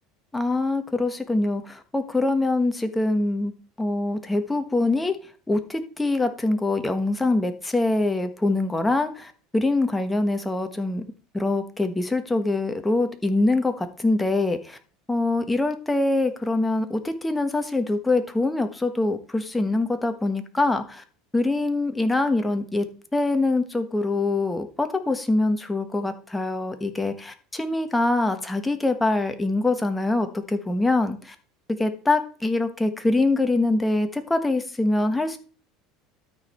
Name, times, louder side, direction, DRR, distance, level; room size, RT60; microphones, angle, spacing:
voice 1, 0.3-3.5 3.8-5.2 5.5-11.0 11.3-14.8 15.1-21.0 21.3-22.9 23.1-31.3 31.8-35.4, left 2 dB, 10° left, 7 dB, 1.2 m, -24 dB
12.5 x 4.9 x 4.3 m, 0.40 s
supercardioid pair, 125°, 0 cm